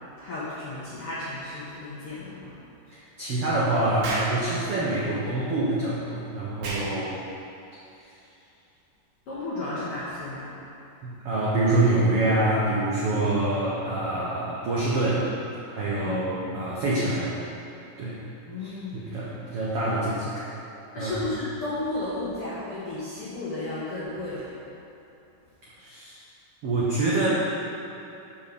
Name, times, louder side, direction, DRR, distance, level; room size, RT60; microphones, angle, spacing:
voice 1, 0.2-2.6 9.3-10.5 16.0-16.8 18.5-19.1 20.9-24.5, left 2 dB, 65° left, -10 dB, 1.4 m, -33 dB
voice 2, 2.9-7.2 11.0-15.3 15.7-17.4 18.0-18.2 18.6-20.4 20.9-21.1 25.8-26.2 26.6-27.3, right 2 dB, 80° right, -7 dB, 1.3 m, -26 dB
Explosion, 4.0-4.4 6.6-6.9, right 2 dB, 60° right, 1.8 m, -31 dB
5.8 x 5.4 x 6.7 m, 2.8 s
omnidirectional pair, 4.2 m